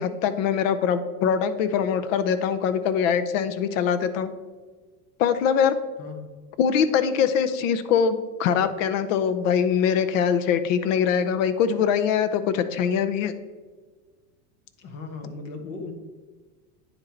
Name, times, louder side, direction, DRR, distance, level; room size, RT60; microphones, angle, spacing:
voice 1, 0.0-4.3 5.2-5.8 6.6-13.3, left 7 dB, 55° left, 11 dB, 0.7 m, -23 dB
voice 2, 14.8-15.9, left 3 dB, 35° left, 4 dB, 1.1 m, -37 dB
9.6 x 3.9 x 4.2 m, 1.4 s
supercardioid pair, 160°, 47 cm